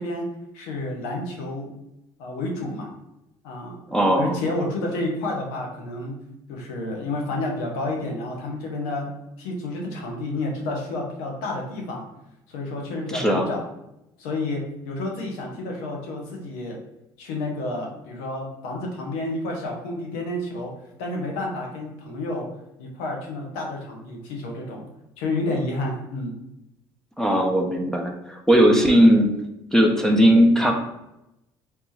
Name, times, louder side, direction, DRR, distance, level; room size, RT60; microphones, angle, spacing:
voice 1, 0.0-1.7 2.2-2.9 3.4-3.8 4.2-6.2 6.5-9.1 9.4-12.0 12.5-13.6 14.2-16.8 17.2-20.7 21.0-22.5 22.8-24.9 25.2-26.3, left 2 dB, 85° left, 0 dB, 0.9 m, -30 dB
voice 2, 3.9-4.4 13.1-13.5 27.2-29.3 29.7-30.7, equal, 5° left, 1 dB, 0.6 m, -18 dB
3.3 x 2.9 x 3.2 m, 0.88 s
supercardioid pair, 80°, 11 cm